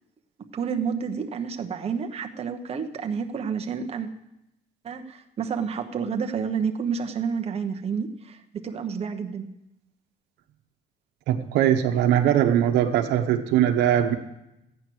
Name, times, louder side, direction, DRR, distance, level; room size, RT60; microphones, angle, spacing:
voice 1, 0.4-4.1 4.8-9.4, right 6 dB, 35° right, 4 dB, 1.1 m, -30 dB
voice 2, 11.3-14.1, right 10 dB, 85° right, 5 dB, 1.1 m, -21 dB
14.0 x 9.2 x 6.3 m, 0.89 s
cardioid pair, 110°, 17 cm